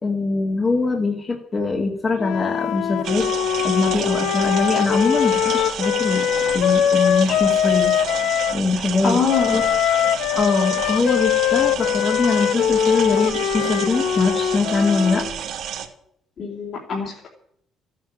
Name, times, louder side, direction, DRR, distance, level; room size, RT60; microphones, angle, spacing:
voice 1, 0.0-3.3 3.6-6.3 6.5-8.0 8.5-9.2 9.5-9.6 10.4-15.3, left 3 dB, 30° left, 1 dB, 2.4 m, -22 dB
Wind instrument woodwind instrument, 2.2-8.6 9.3-15.3, left 10 dB, 75° left, 0.8 m, -22 dB
sound 1, 3.0-15.9, right 8 dB, 70° right, 2.6 m, -31 dB
voice 2, 9.0-9.6 16.4-17.3, left 5 dB, 50° left, -2 dB, 3.9 m, -23 dB
14.5 x 9.7 x 8.8 m, 0.69 s
cardioid pair, 120°, 0 cm